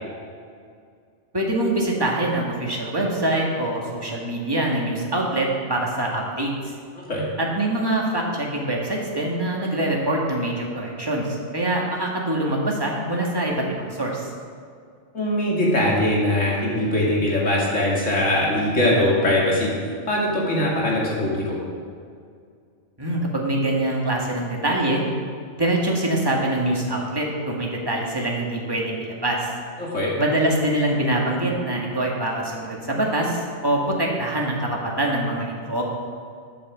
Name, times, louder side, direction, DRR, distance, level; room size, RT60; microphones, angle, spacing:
voice 1, 1.3-6.5 7.4-14.3 23.0-25.0 25.5-29.5 30.2-35.8, right 1 dB, 20° right, -2 dB, 1.8 m, -24 dB
voice 2, 15.1-19.7 20.1-21.6 29.8-30.1, left 1 dB, 85° left, -4 dB, 2.9 m, -21 dB
8.7 x 7.9 x 7.4 m, 2.2 s
omnidirectional pair, 1.3 m